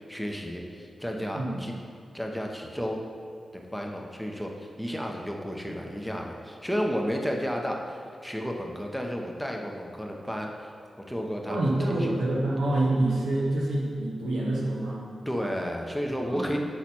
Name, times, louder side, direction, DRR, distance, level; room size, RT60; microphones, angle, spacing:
voice 1, 0.1-1.7 2.1-3.0 3.5-10.7 11.1-12.1 15.3-16.6, equal, ahead, 1 dB, 0.8 m, -32 dB
voice 2, 1.3-1.8 11.5-15.1 16.2-16.5, right 1 dB, 85° right, -4 dB, 1.0 m, -27 dB
6.1 x 4.0 x 4.3 m, 2.4 s
cardioid pair, 50°, 0 cm